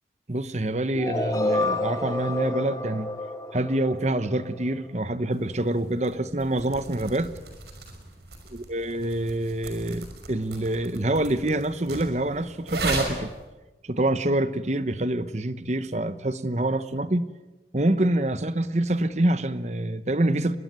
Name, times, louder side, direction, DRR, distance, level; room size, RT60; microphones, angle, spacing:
voice 1, 0.3-3.1 3.5-7.3 8.7-13.3 13.8-17.3 17.7-20.6, right 1 dB, 40° right, 1.0 m, -26 dB
sound 1, 0.9-4.9, left 2 dB, 20° left, 3.1 m, -29 dB
sound 2, 5.3-13.4, right 2 dB, 70° right, 5.8 m, -37 dB
25.0 x 21.5 x 9.6 m
head